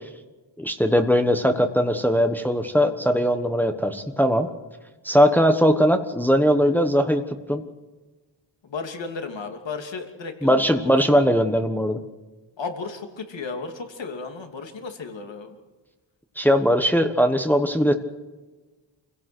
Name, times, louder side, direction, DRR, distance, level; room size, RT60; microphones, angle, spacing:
voice 1, 0.6-4.5 5.0-7.2 7.5-7.6 10.4-12.0 16.4-17.9, equal, 5° left, 5 dB, 1.2 m, -20 dB
voice 2, 8.6-11.0 12.6-15.6, left 4 dB, 75° left, 5 dB, 3.0 m, -34 dB
27.5 x 17.0 x 6.2 m, 1.2 s
wide cardioid pair, 165°, 45 cm